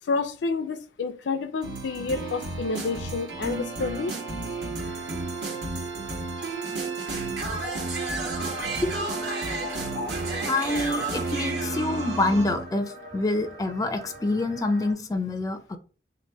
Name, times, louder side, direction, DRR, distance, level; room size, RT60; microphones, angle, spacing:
voice 1, 0.0-4.1, left 4 dB, 90° left, 0.4 m, -29 dB
sound 1, 1.6-12.7, right 3 dB, 70° right, 1.2 m, -31 dB
sound 2, 8.1-14.9, left 1 dB, 40° right, 1.2 m, -44 dB
voice 2, 8.8-9.1 10.4-15.8, left 2 dB, 20° left, 0.4 m, -27 dB
2.9 x 2.6 x 4.4 m
head